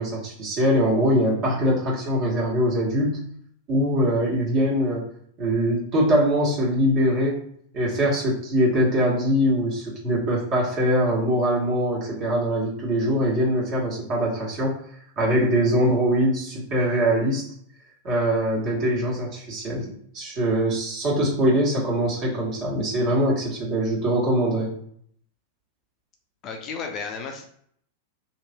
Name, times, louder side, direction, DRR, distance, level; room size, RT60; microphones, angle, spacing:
voice 1, 0.0-3.3 3.7-5.1 5.4-7.4 7.7-14.8 15.2-17.5 18.0-19.8 20.1-24.7, equal, 40° right, -4 dB, 1.3 m, -22 dB
voice 2, 26.4-27.5, left 5 dB, 35° left, 3 dB, 0.5 m, -33 dB
3.0 x 2.6 x 2.2 m, 0.64 s
figure-of-eight pair, 95°, 0 cm